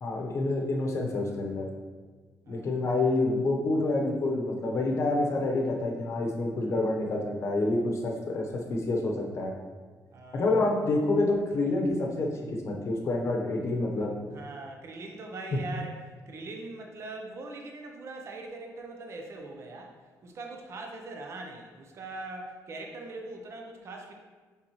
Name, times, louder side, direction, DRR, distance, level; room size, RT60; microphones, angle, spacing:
voice 1, 0.0-1.7 2.5-9.5 10.3-12.3 12.6-14.1, left 2 dB, 45° left, 1 dB, 0.9 m, -28 dB
voice 2, 2.5-2.8 10.1-10.6 14.3-16.0 16.3-19.9 20.2-24.1, right 2 dB, 45° right, 2 dB, 0.7 m, -41 dB
8.0 x 3.8 x 3.0 m, 1.4 s
cardioid pair, 145°, 6 cm